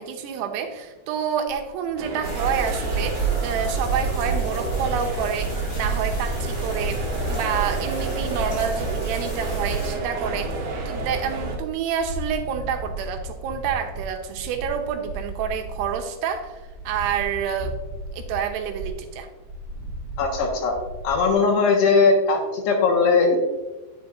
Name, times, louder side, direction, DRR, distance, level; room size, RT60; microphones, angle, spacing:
voice 1, 0.0-7.0 7.3-17.8 18.1-19.3, right 7 dB, 85° right, 4 dB, 2.8 m, -28 dB
sound 1, 1.5-21.3, right 1 dB, 45° right, 1.4 m, -35 dB
sound 2, 2.0-11.6, right 3 dB, 60° right, 2.3 m, -32 dB
sound 3, 2.2-9.9, right 4 dB, 60° left, 4.7 m, -28 dB
voice 2, 20.2-20.8 21.0-23.4, left 4 dB, 80° left, 0 dB, 3.5 m, -19 dB
10.0 x 7.3 x 2.5 m, 1.1 s
omnidirectional pair, 4.8 m